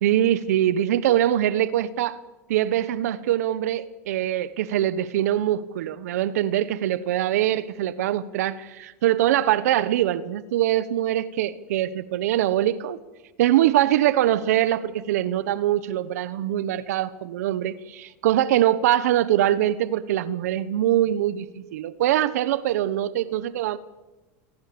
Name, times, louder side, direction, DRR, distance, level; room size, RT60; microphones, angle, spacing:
voice 1, 0.0-2.2 2.5-13.0 13.4-23.8, right 12 dB, 80° right, 16 dB, 1.3 m, -23 dB
28.5 x 21.5 x 7.1 m, 1.1 s
supercardioid pair, 125°, 8 cm